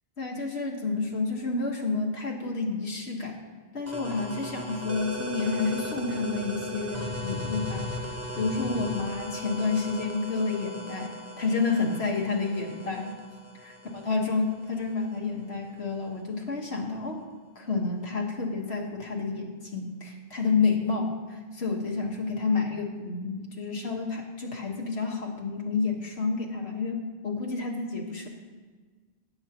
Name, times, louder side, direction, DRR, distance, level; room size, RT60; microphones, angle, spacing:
voice 1, 0.2-3.4 3.7-13.1 13.6-13.8 14.1-17.2 17.6-28.3, left 4 dB, 85° left, 1 dB, 1.7 m, -30 dB
sound 1, 3.9-15.3, left 1 dB, 15° right, 0.9 m, -37 dB
17.0 x 8.2 x 2.9 m, 1.4 s
omnidirectional pair, 1.1 m